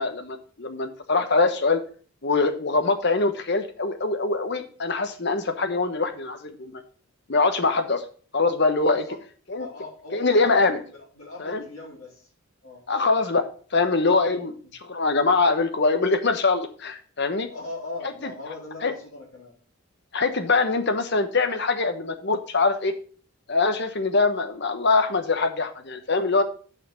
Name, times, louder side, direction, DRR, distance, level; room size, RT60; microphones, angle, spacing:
voice 1, 0.0-1.8 2.2-6.8 7.3-8.0 8.3-9.0 9.5-9.7 10.1-10.8 11.4-11.6 12.9-13.5 13.7-14.6 14.8-17.5 18.8-18.9 20.1-22.9 23.5-26.4, left 3 dB, 50° left, 8 dB, 1.1 m, -23 dB
voice 2, 8.9-9.2 9.6-12.3 12.6-12.8 14.3-14.5 17.5-19.5, left 2 dB, 75° left, -5 dB, 3.8 m, -40 dB
6.6 x 5.9 x 7.1 m, 0.42 s
head